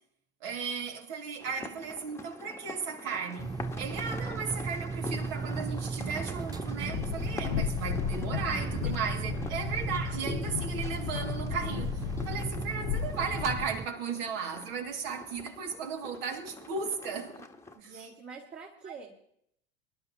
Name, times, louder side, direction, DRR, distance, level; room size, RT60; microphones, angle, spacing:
voice 1, 0.4-17.4 17.8-18.1 18.9-19.0, right 5 dB, 65° right, 2.2 m, -36 dB
sound 1, 1.4-17.8, left 2 dB, 10° left, 1.2 m, -45 dB
sound 2, 3.4-13.9, right 5 dB, 10° right, 0.4 m, -36 dB
Train, 6.8-13.7, left 11 dB, 75° left, 0.6 m, -35 dB
voice 2, 17.7-19.1, right 5 dB, 35° right, 2.3 m, -46 dB
24.5 x 11.5 x 2.8 m
hypercardioid pair, 85°, 32 cm